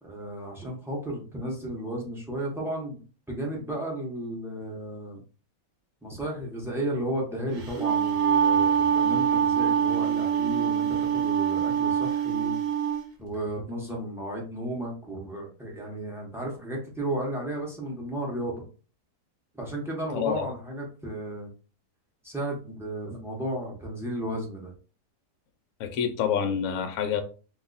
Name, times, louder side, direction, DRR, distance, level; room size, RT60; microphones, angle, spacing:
voice 1, 0.0-5.2 6.0-12.6 13.2-18.6 19.5-21.5 22.2-24.7, right 1 dB, 5° right, -2 dB, 0.5 m, -34 dB
Wind instrument woodwind instrument, 7.6-13.0, right 8 dB, 65° right, 1.2 m, -24 dB
voice 2, 20.1-20.5 25.8-27.2, left 8 dB, 70° left, 7 dB, 0.9 m, -27 dB
2.7 x 2.3 x 3.9 m, 0.36 s
omnidirectional pair, 1.8 m